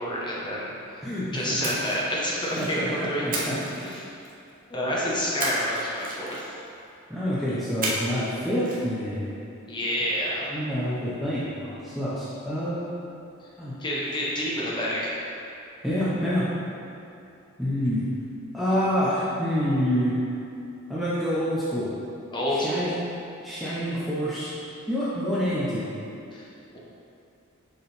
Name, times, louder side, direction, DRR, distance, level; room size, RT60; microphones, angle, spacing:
voice 1, 0.0-1.1 1.3-3.2 3.8-4.1 4.7-6.5 9.7-10.5 13.8-15.1 22.3-23.0 26.3-26.5, equal, 20° left, -6 dB, 1.1 m, -28 dB
voice 2, 1.0-1.7 2.6-3.5 7.1-9.3 10.5-13.0 13.6-13.7 15.8-16.5 17.6-18.0 18.5-20.2 20.9-21.9 22.5-22.9 23.4-24.5 24.9-25.9, equal, ahead, -10 dB, 0.7 m, -27 dB
Splash splatter, 1.6-2.8 3.3-4.5 5.4-6.7 7.8-8.3 8.6-8.8, right 2 dB, 40° right, 0.9 m, -33 dB
6.6 x 3.9 x 4.2 m, 2.8 s
head